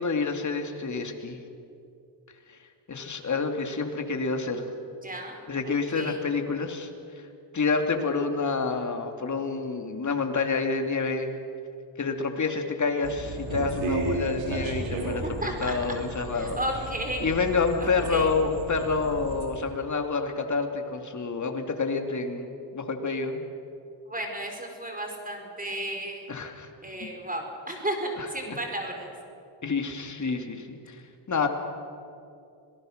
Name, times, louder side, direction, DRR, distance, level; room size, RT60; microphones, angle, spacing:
voice 1, 0.0-1.4 2.9-4.6 5.5-6.9 7.5-11.3 12.0-15.2 15.6-16.6 17.2-23.4 26.3-26.7 27.0-27.1 28.5-28.6 29.6-31.0 31.3-31.5, left 4 dB, 40° left, 5 dB, 2.7 m, -28 dB
voice 2, 5.0-6.2 15.0-16.0 16.3-17.3 17.8-18.3 24.1-26.2 26.8-29.1, right 1 dB, 20° right, 2 dB, 4.9 m, -34 dB
sound 1, 13.0-19.5, right 3 dB, 80° right, 4.4 m, -34 dB
26.0 x 19.0 x 6.6 m, 2.5 s
cardioid pair, 80°, 46 cm